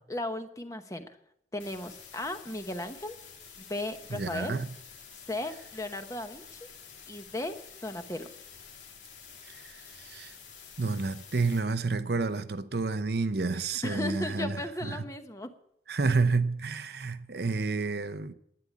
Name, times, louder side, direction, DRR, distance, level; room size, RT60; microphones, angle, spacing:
voice 1, 0.1-1.1 1.5-3.2 3.6-4.6 5.3-6.6 7.1-7.5 7.8-8.3 13.6-15.5, left 1 dB, 20° left, 1.0 m, -36 dB
sound 1, 1.6-11.6, left 6 dB, 85° left, 2.7 m, -49 dB
voice 2, 4.1-4.7 9.5-9.6 10.0-10.3 10.8-15.0 15.9-18.3, right 3 dB, 60° right, 0.7 m, -30 dB
11.5 x 9.7 x 8.4 m
head